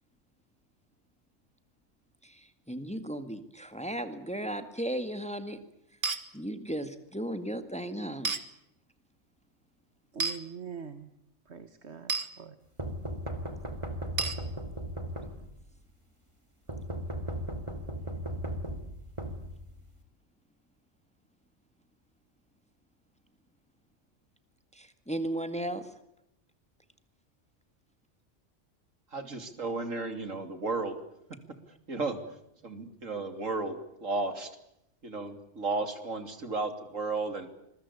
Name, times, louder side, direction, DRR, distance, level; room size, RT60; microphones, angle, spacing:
voice 1, 2.2-5.6 6.3-8.4 24.7-25.9, right 1 dB, 5° left, 9 dB, 1.8 m, -35 dB
sound 1, 6.0-6.2 8.2-8.4 10.2-10.4 12.1-12.3 14.2-14.4, right 4 dB, 40° right, 1.8 m, -30 dB
voice 2, 10.1-11.1 11.5-12.6, right 6 dB, 60° right, 10 dB, 1.6 m, -43 dB
sound 2, 12.8-15.7 16.7-20.0, equal, 25° right, 3.3 m, -37 dB
voice 3, 29.1-30.9 31.9-32.2 32.6-34.5 35.0-37.5, right 3 dB, 90° right, 8 dB, 3.4 m, -33 dB
26.5 x 21.5 x 8.4 m, 0.81 s
omnidirectional pair, 1.3 m